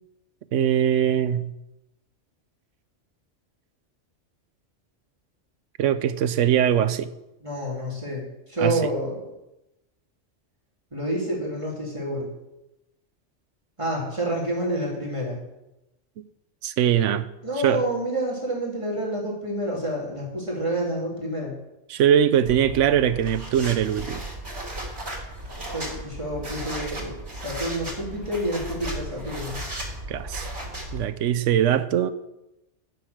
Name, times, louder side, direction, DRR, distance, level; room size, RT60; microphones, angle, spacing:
voice 1, 0.5-1.5 5.8-7.1 8.6-8.8 16.2-16.3 16.6-17.3 17.6-17.8 21.9-24.2 30.1-30.5 30.9-32.1, right 9 dB, 85° right, 1.0 m, -21 dB
voice 2, 7.4-9.3 10.9-12.3 13.8-15.4 17.4-21.5 25.7-29.6, right 1 dB, 25° right, 2.5 m, -28 dB
sound 1, 22.5-31.1, right 1 dB, 60° right, 3.2 m, -35 dB
9.4 x 6.5 x 6.4 m
omnidirectional pair, 1.2 m